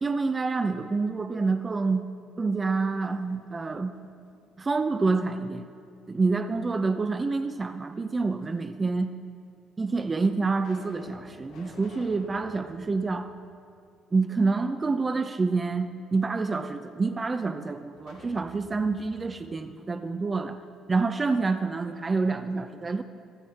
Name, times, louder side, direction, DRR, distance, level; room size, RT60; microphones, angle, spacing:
voice 1, 0.0-2.0 2.4-3.9 4.6-5.7 6.1-9.1 9.8-13.3 14.1-20.6 20.9-23.0, right 4 dB, 30° right, 8 dB, 0.6 m, -27 dB
sound 1, 2.8-3.8 4.2-5.5 6.7-7.5 8.4-8.5 9.4-9.5 10.1-14.2 14.5-14.6 17.9-20.7, left 2 dB, 85° left, 2.5 m, -52 dB
15.5 x 13.5 x 4.4 m, 2.3 s
supercardioid pair, 75°, 0 cm